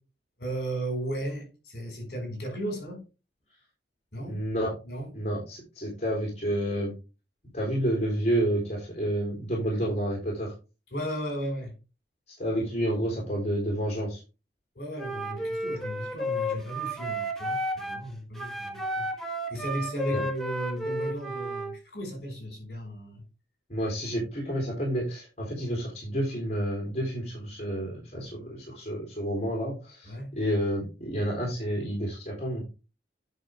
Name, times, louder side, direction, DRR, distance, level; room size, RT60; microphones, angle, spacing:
voice 1, 0.4-3.0 4.1-4.4 4.8-5.1 10.9-11.7 14.7-19.1 19.5-23.2 30.0-30.3, right 1 dB, 60° left, 4.9 m, -35 dB
voice 2, 4.3-4.7 5.1-6.9 7.5-10.5 12.4-14.2 20.1-20.2 23.7-32.6, equal, 40° left, 3.5 m, -30 dB
Wind instrument woodwind instrument, 15.0-18.1 18.3-21.7, equal, ahead, 1.0 m, -32 dB
9.6 x 5.8 x 3.4 m
head